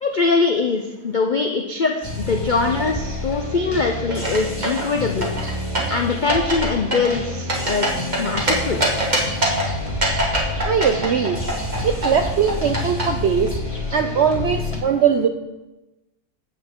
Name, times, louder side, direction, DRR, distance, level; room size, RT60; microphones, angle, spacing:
voice 1, 0.0-5.3 5.9-8.8, left 4 dB, 65° left, 3 dB, 0.4 m, -22 dB
sound 1, 2.0-14.8, left 2 dB, 20° left, 1.7 m, -28 dB
sound 2, 4.1-4.9 5.2-6.0 6.3-6.7 6.9-8.5 8.8-9.7 10.0-11.8 12.0-13.0, right 1 dB, 30° right, 1.6 m, -22 dB
voice 2, 10.6-11.4 11.8-13.5 13.9-15.3, right 7 dB, 70° right, 7 dB, 0.6 m, -20 dB
9.1 x 7.7 x 3.7 m, 1.0 s
omnidirectional pair, 1.6 m